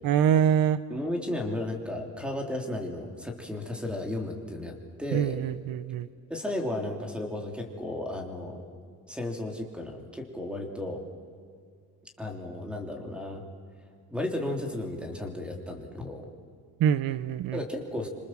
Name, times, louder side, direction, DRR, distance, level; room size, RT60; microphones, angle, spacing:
voice 1, 0.0-0.8 5.1-6.1 16.8-17.6, right 9 dB, 65° right, 14 dB, 0.8 m, -24 dB
voice 2, 0.9-5.4 6.3-8.6 9.1-11.0 12.2-13.4 14.1-16.3 17.5-18.1, left 1 dB, 5° right, 3 dB, 3.4 m, -34 dB
28.5 x 25.5 x 7.6 m, 2.1 s
cardioid pair, 145°, 36 cm